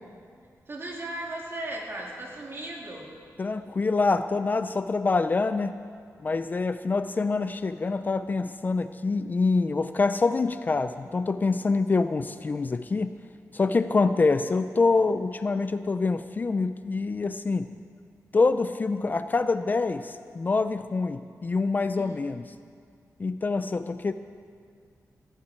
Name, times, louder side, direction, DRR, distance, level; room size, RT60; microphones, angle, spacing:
voice 1, 0.7-3.1 22.0-22.2, right 1 dB, 40° right, -3 dB, 3.2 m, -36 dB
voice 2, 3.4-5.8 6.2-13.2 13.5-17.7 18.3-22.4 23.2-24.1, left 3 dB, 30° left, 10 dB, 0.4 m, -25 dB
19.5 x 15.5 x 4.5 m, 2.1 s
wide cardioid pair, 155°, 6 cm